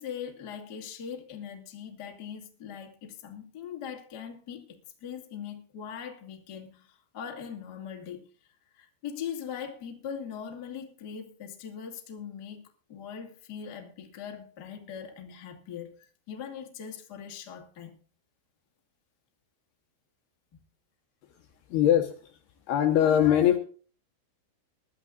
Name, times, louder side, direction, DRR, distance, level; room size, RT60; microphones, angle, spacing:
voice 1, 0.0-8.2 8.7-12.6 12.9-17.9, left 8 dB, 50° left, 1.1 m, -41 dB
voice 2, 21.7-22.1 22.7-23.6, left 10 dB, 70° left, 2.6 m, -21 dB
22.0 x 12.5 x 2.5 m
omnidirectional pair, 5.9 m